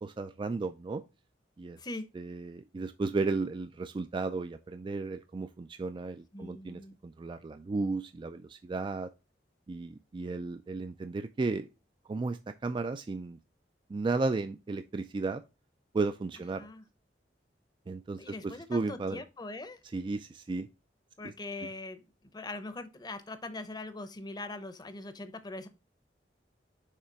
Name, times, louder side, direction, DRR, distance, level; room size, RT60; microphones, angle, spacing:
voice 1, 0.0-1.0 1.6-1.8 2.1-9.1 9.7-11.7 12.1-13.4 13.9-15.4 15.9-16.7 17.9-19.2 19.8-20.7 21.2-21.3 21.6-21.7, right 3 dB, 30° right, 0.3 m, -34 dB
voice 2, 6.3-7.0 16.6-16.8 18.2-19.8 21.2-22.0 22.3-25.7, left 2 dB, 25° left, 0.7 m, -41 dB
6.7 x 3.3 x 4.5 m
head